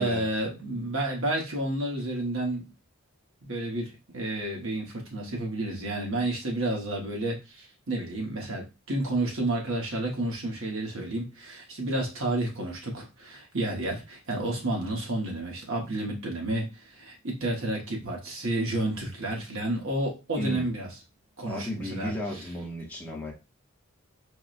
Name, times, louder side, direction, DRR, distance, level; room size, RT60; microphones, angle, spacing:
voice 1, 0.0-2.7 3.4-20.9 21.4-22.1, right 1 dB, 65° right, 1.2 m, -31 dB
voice 2, 20.4-20.7 21.5-23.3, equal, 10° left, 0.8 m, -34 dB
4.7 x 2.2 x 2.5 m
head